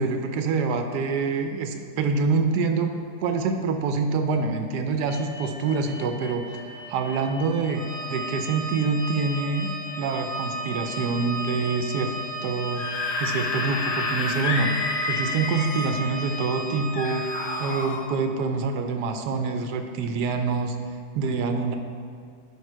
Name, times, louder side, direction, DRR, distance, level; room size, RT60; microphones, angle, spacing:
voice 1, 0.0-3.0 3.2-9.7 10.0-12.2 12.4-12.8 13.2-14.7 15.1-17.3 17.6-20.8 21.1-21.7, right 4 dB, 80° right, 6 dB, 1.1 m, -26 dB
sound 1, 5.1-16.5, left 3 dB, 20° left, 1.5 m, -41 dB
Organ, 7.7-18.1, right 2 dB, 5° left, 1.1 m, -35 dB
Screaming / Screech, 12.6-16.0 16.9-18.0, left 3 dB, 85° left, 1.3 m, -29 dB
10.5 x 3.6 x 4.5 m, 2.3 s
omnidirectional pair, 1.8 m